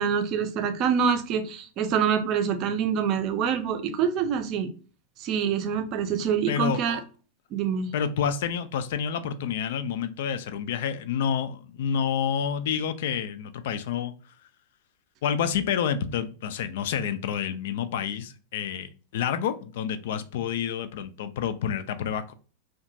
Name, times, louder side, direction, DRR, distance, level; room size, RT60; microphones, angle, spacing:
voice 1, 0.0-4.7 5.2-7.0 7.5-7.9, right 7 dB, 35° right, 0.5 m, -26 dB
voice 2, 6.5-7.0 7.9-14.1 15.2-22.3, left 8 dB, 55° left, 0.3 m, -29 dB
2.8 x 2.3 x 2.6 m
figure-of-eight pair, 90°, 0 cm